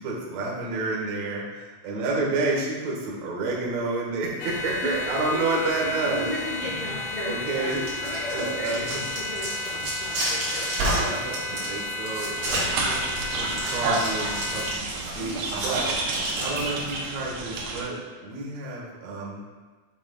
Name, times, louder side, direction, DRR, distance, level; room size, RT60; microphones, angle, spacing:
voice 1, 0.0-6.3 6.6-6.9 7.3-7.9 8.3-8.8 10.8-19.4, right 3 dB, 65° right, -3 dB, 1.7 m, -30 dB
voice 2, 1.9-2.3 4.8-7.7 8.0-10.7 15.2-15.4, left 1 dB, 65° left, -8 dB, 1.4 m, -35 dB
sound 1, 4.4-14.8, left 1 dB, 85° left, 2.8 m, -33 dB
sound 2, 7.6-16.9, right 1 dB, 50° right, 2.3 m, -31 dB
sound 3, 12.4-17.8, right 3 dB, 85° right, 1.8 m, -30 dB
7.6 x 6.8 x 2.3 m, 1.4 s
omnidirectional pair, 4.9 m